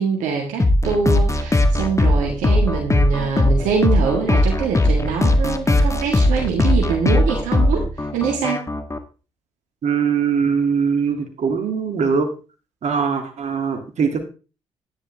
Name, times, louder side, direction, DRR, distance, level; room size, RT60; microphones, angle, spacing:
voice 1, 0.0-8.7, right 6 dB, 80° right, 1 dB, 1.9 m, -24 dB
sound 1, 0.6-9.0, left 1 dB, 25° left, 1.7 m, -19 dB
voice 2, 9.8-12.3 12.8-14.2, right 6 dB, 60° right, 5 dB, 2.6 m, -21 dB
10.5 x 10.5 x 3.4 m, 0.33 s
hypercardioid pair, 45°, 13 cm